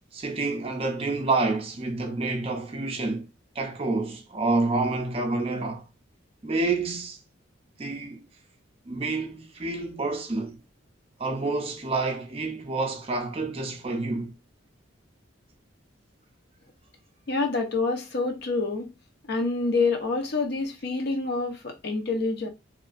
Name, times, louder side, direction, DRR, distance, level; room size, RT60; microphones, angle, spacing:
voice 1, 0.1-3.3 3.6-5.9 6.4-7.2 7.8-8.2 8.9-10.6 11.2-14.3, right 3 dB, 30° right, 0.5 m, -28 dB
voice 2, 17.3-18.9 19.3-22.5, left 3 dB, 55° left, 0.6 m, -27 dB
3.1 x 2.2 x 2.4 m
head